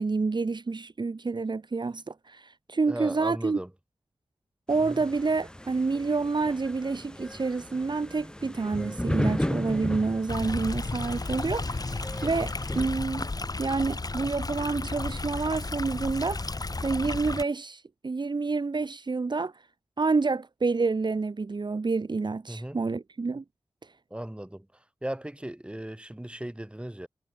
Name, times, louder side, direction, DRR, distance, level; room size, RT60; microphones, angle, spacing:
voice 1, 0.0-3.6 4.7-11.9 12.2-13.3 13.6-16.5 16.8-19.5 20.0-23.4, right 4 dB, 50° right, 1.4 m, -28 dB
voice 2, 2.8-3.7 4.8-5.0 22.5-22.8 24.1-27.1, right 1 dB, 10° right, 3.7 m, -37 dB
sound 1, 4.7-12.9, left 1 dB, 10° left, 4.1 m, -35 dB
Stream, 10.3-17.4, left 3 dB, 40° left, 4.1 m, -33 dB
cardioid pair, 60°, 10 cm